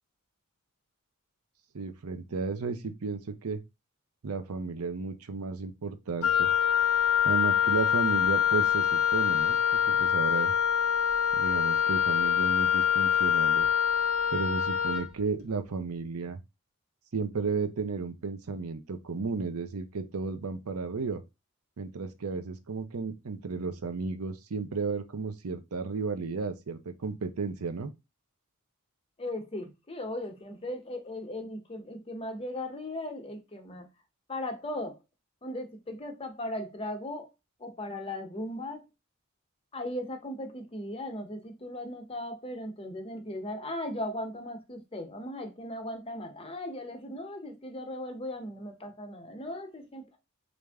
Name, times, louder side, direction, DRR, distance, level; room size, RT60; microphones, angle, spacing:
voice 1, 1.7-3.6 4.2-6.5 7.2-9.6 9.8-10.5 11.3-13.7 14.3-16.4 17.1-21.2 21.8-27.9, right 4 dB, 90° right, 0.7 m, -33 dB
Wind instrument woodwind instrument, 6.2-15.1, left 9 dB, 70° left, 0.5 m, -25 dB
voice 2, 29.2-33.9 34.3-35.0 35.4-37.3 37.6-38.8 39.7-50.1, left 1 dB, 25° left, 0.8 m, -37 dB
3.3 x 2.5 x 3.5 m
head